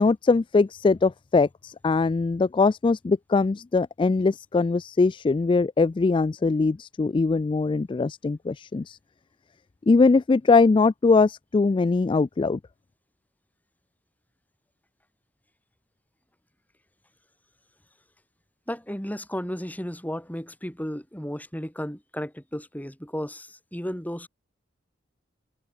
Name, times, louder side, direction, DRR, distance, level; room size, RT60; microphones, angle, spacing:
voice 1, 0.0-9.0 9.9-12.6, left 4 dB, 25° left, 0.3 m, -21 dB
voice 2, 18.7-24.3, equal, 10° left, 3.2 m, -34 dB
open air
head